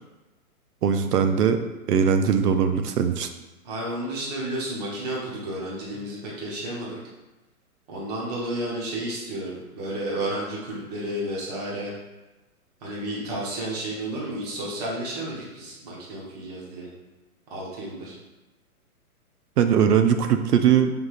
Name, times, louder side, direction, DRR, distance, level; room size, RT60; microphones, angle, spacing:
voice 1, 0.8-1.6 1.9-3.3 19.6-20.9, right 7 dB, 90° right, 8 dB, 0.6 m, -20 dB
voice 2, 3.6-7.0 7.9-11.9 12.8-16.9 17.5-18.2, right 1 dB, 25° right, -5 dB, 1.0 m, -32 dB
5.2 x 3.3 x 2.4 m, 1.1 s
hypercardioid pair, 160°, 45 cm